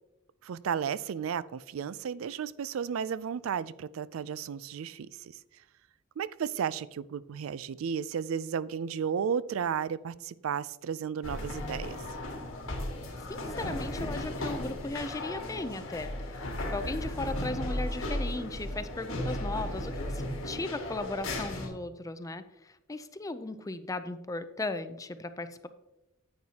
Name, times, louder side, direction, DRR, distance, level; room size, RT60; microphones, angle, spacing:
voice 1, 0.4-5.4 6.2-12.0, right 7 dB, 80° right, 18 dB, 0.4 m, -33 dB
sound 1, 11.2-21.7, left 1 dB, 80° left, 1.7 m, -35 dB
voice 2, 13.3-16.5 16.7-25.7, left 2 dB, 15° left, 11 dB, 0.4 m, -37 dB
10.5 x 8.6 x 2.8 m, 0.95 s
head